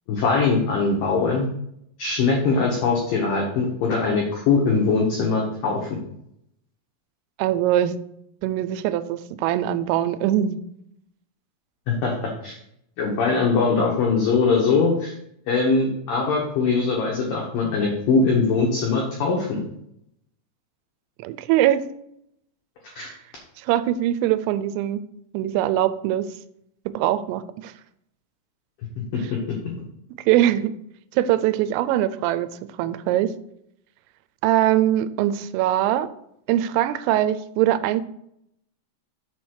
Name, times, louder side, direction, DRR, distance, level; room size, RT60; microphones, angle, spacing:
voice 1, 0.1-1.5 2.0-6.0 11.9-12.5 13.0-15.1 15.5-19.6 23.0-23.1 29.1-29.6, left 4 dB, 85° left, -2 dB, 1.9 m, -22 dB
voice 2, 7.4-8.0 8.4-10.6 21.2-21.9 23.0-23.1 23.6-25.0 25.3-26.3 26.9-27.7 30.3-30.7 31.1-32.5 32.8-33.3 34.4-36.1 36.5-38.0, right 12 dB, 90° right, 13 dB, 3.2 m, -22 dB
7.3 x 4.4 x 6.4 m, 0.75 s
omnidirectional pair, 5.7 m